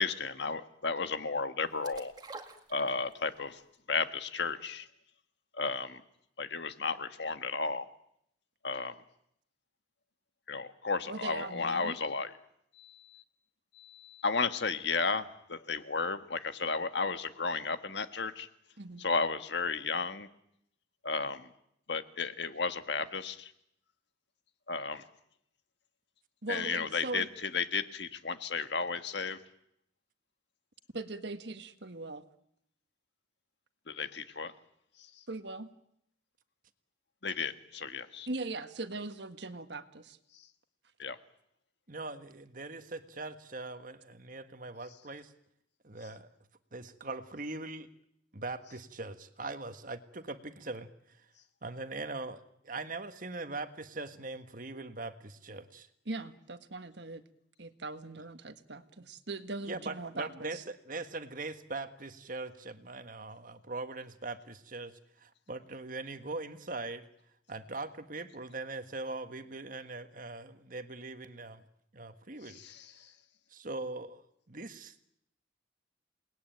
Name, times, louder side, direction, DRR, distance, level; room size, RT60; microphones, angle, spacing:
voice 1, 0.0-2.1 2.7-3.6 3.9-4.9 5.5-6.0 6.4-7.8 8.6-9.0 10.5-12.3 12.7-13.2 13.7-18.5 19.0-20.3 21.0-21.5 21.9-23.5 24.7-25.0 26.5-29.4 33.9-34.5 37.2-38.3 41.0-41.2 72.5-73.1, left 4 dB, 60° left, 9 dB, 1.5 m, -33 dB
sound 1, 1.8-3.4 3.7-3.8, right 3 dB, 20° right, 1.9 m, -47 dB
voice 2, 11.1-12.0 18.8-19.0 26.4-27.3 30.9-32.2 35.3-35.7 38.3-40.2 56.0-57.2 57.6-60.6, right 2 dB, 60° right, 9 dB, 1.6 m, -40 dB
voice 3, 41.9-45.3 45.8-46.3 46.7-47.9 48.3-51.2 51.6-55.9 59.6-64.9 65.2-67.1 67.5-71.6 71.9-72.6 73.5-75.1, right 3 dB, 45° right, 9 dB, 1.6 m, -41 dB
29.0 x 20.0 x 9.2 m, 0.75 s
head